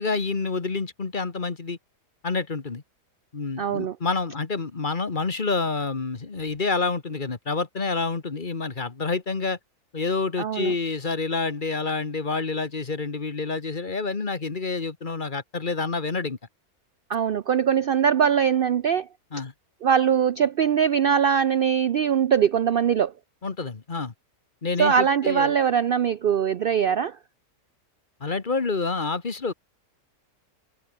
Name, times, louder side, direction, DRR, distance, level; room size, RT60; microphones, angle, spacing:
voice 1, 0.0-1.8 2.2-2.8 3.3-9.6 9.9-16.4 19.3-19.5 23.4-24.1 24.6-25.5 28.2-29.5, left 4 dB, 35° left, 1.5 m, -28 dB
voice 2, 3.6-4.0 10.4-10.7 17.1-19.1 19.8-23.1 24.8-27.2, right 8 dB, 80° right, 0.5 m, -22 dB
omnidirectional pair, 1.6 m